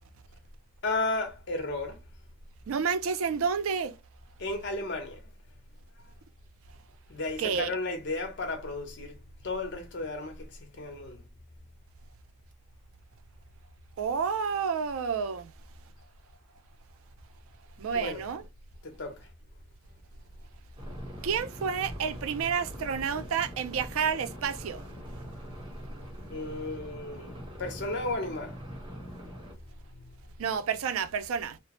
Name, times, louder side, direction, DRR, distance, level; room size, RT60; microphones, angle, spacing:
voice 1, 0.8-2.0 4.4-5.3 7.1-9.2 9.4-11.2 17.9-18.2 18.8-19.3 26.3-28.6 29.9-30.0, left 2 dB, 55° left, 0.8 m, -34 dB
voice 2, 2.7-3.9 7.4-7.7 14.0-15.5 17.8-18.4 21.2-24.8 30.4-31.6, right 6 dB, 65° right, 0.4 m, -30 dB
sound 1, 20.8-29.5, equal, 25° right, 0.9 m, -43 dB
2.8 x 2.0 x 2.9 m
head